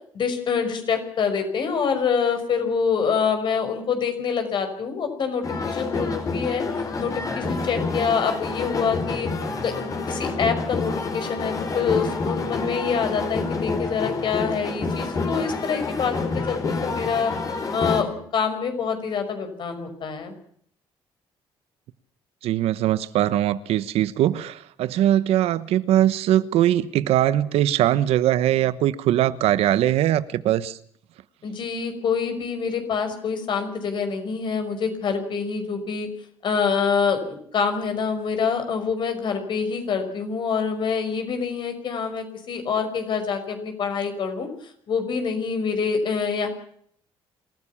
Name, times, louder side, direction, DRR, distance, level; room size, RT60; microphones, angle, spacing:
voice 1, 0.1-6.6 7.0-9.3 9.6-17.3 17.7-20.3 31.4-36.1 36.4-44.5 44.9-46.5, left 6 dB, 50° left, 5.7 m, -26 dB
sound 1, 5.4-18.0, left 3 dB, 35° left, 4.8 m, -28 dB
voice 2, 22.4-30.8, right 12 dB, 75° right, 1.1 m, -21 dB
26.5 x 15.0 x 7.3 m
cardioid pair, 130°, 10 cm